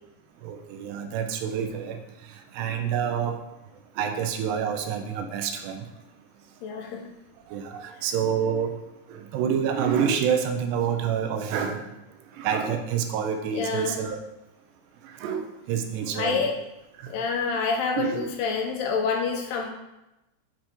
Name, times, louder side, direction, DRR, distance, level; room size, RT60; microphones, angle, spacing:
voice 1, 0.4-2.0 2.5-3.4 4.0-5.9 7.5-8.7 9.1-11.9 12.4-14.2 15.0-16.5 17.0-17.1 18.0-18.3, right 7 dB, 80° right, 6 dB, 2.8 m, -27 dB
voice 2, 6.6-7.1 13.5-14.0 16.1-16.6 17.1-19.7, left 5 dB, 75° left, 2 dB, 2.8 m, -27 dB
9.6 x 4.7 x 4.4 m, 0.94 s
omnidirectional pair, 4.9 m